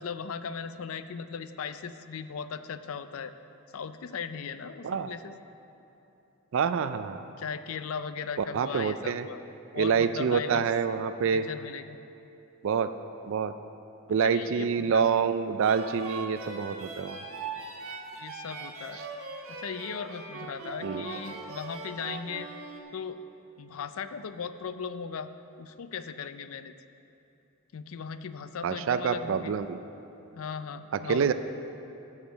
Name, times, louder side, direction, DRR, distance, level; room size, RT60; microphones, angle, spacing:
voice 1, 0.0-3.3 3.7-5.4 7.4-9.4 9.7-10.7 11.2-12.0 14.1-15.1 18.1-19.0 19.5-22.5 22.9-23.2 23.6-25.3 25.6-26.7 27.7-29.5 30.3-31.3, left 6 dB, 75° left, 11 dB, 0.4 m, -38 dB
voice 2, 6.5-7.3 8.5-9.3 9.7-11.4 12.6-12.9 13.2-13.5 14.1-17.2 20.8-21.1 28.6-29.8 31.1-31.3, right 6 dB, 65° right, 10 dB, 0.4 m, -27 dB
sound 1, 15.6-22.8, right 4 dB, 80° right, 1.4 m, -40 dB
12.5 x 7.4 x 5.2 m, 2.9 s
head